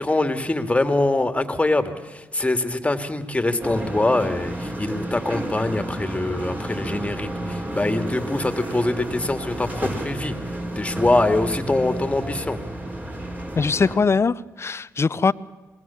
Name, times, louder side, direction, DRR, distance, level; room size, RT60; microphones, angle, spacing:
voice 1, 0.0-10.3 10.8-12.6, left 2 dB, 15° left, 9 dB, 2.4 m, -23 dB
sound 1, 3.6-14.0, right 1 dB, 25° right, 5.3 m, -31 dB
voice 2, 13.6-15.3, left 5 dB, 40° left, 18 dB, 0.7 m, -21 dB
27.0 x 20.0 x 7.2 m, 1.2 s
supercardioid pair, 50°, 7 cm